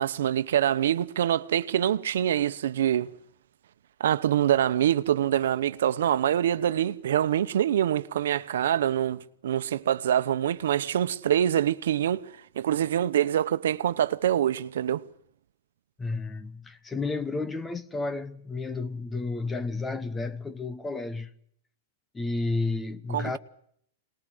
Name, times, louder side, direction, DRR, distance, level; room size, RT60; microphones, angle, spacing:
voice 1, 0.0-3.1 4.0-12.2 12.6-15.0 23.1-23.4, right 10 dB, 80° right, 1.0 m, -25 dB
voice 2, 16.0-21.3 22.1-23.4, left 3 dB, 10° left, 1.0 m, -31 dB
23.5 x 20.0 x 8.0 m
supercardioid pair, 150°, 0 cm